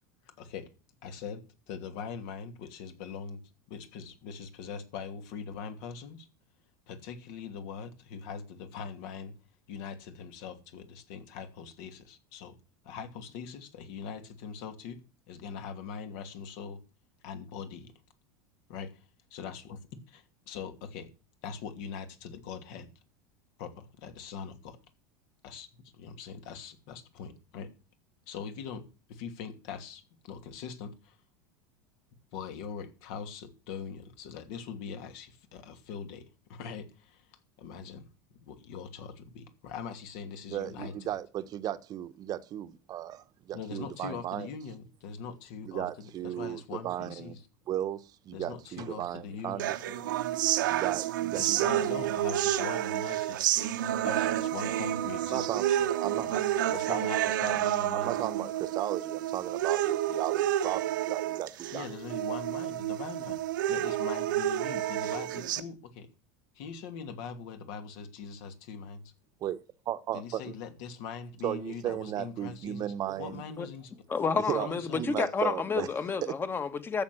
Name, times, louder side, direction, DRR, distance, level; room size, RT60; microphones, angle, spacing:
voice 1, 0.4-0.7 1.0-1.4 1.7-3.4 3.7-6.3 6.9-9.3 9.7-12.6 12.8-15.0 15.3-16.8 17.2-17.9 18.7-21.1 21.4-22.9 23.6-24.8 25.4-27.7 28.3-31.2 32.3-38.1 38.4-41.1 43.5-47.4 48.3-49.7 51.4-53.4 54.0-55.9 56.2-56.4 56.7-58.2 61.7-66.1 66.5-69.1 70.1-72.9 73.2-73.9 74.5-75.1, left 6 dB, 65° left, 2.8 m, -42 dB
voice 2, 40.5-44.5 45.6-47.3 47.7-50.1 50.7-51.8 55.3-55.7 56.0-56.3 56.9-57.0 57.9-61.9 69.4-69.6 69.9-70.6 71.4-73.4 74.5-75.9 76.2-76.3, right 12 dB, 40° right, 1.1 m, -35 dB
sound 1, 49.6-65.6, right 12 dB, 90° right, 1.3 m, -30 dB
voice 3, 74.1-77.0, left 5 dB, 20° left, 1.5 m, -30 dB
14.0 x 7.5 x 6.2 m
supercardioid pair, 125°, 10 cm